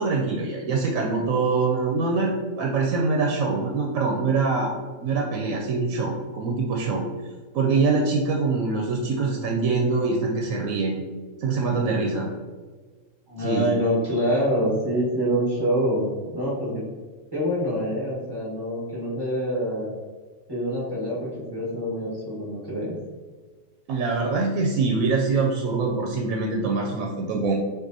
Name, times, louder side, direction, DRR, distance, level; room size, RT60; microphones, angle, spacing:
voice 1, 0.0-4.7 5.0-7.1 7.5-11.0 11.4-12.3 13.4-13.8 23.9-27.5, right 4 dB, 85° right, 0 dB, 1.0 m, -24 dB
voice 2, 13.3-16.9 17.3-19.9 20.5-23.0, equal, 20° right, -6 dB, 1.3 m, -26 dB
6.1 x 2.5 x 2.6 m, 1.4 s
omnidirectional pair, 1.4 m